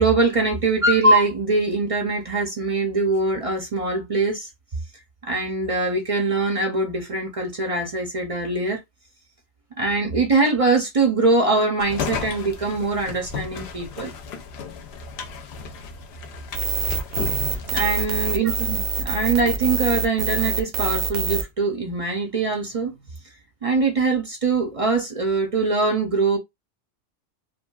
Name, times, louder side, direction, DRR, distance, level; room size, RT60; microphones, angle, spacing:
voice 1, 0.0-4.5 5.2-8.8 9.8-14.1 17.7-22.9 23.6-26.4, right 3 dB, 45° right, 0.5 m, -22 dB
sound 1, 11.8-19.0, left 5 dB, 70° left, 0.8 m, -34 dB
sound 2, 16.5-21.4, right 4 dB, 75° right, 0.8 m, -25 dB
3.0 x 2.4 x 2.2 m
omnidirectional pair, 1.2 m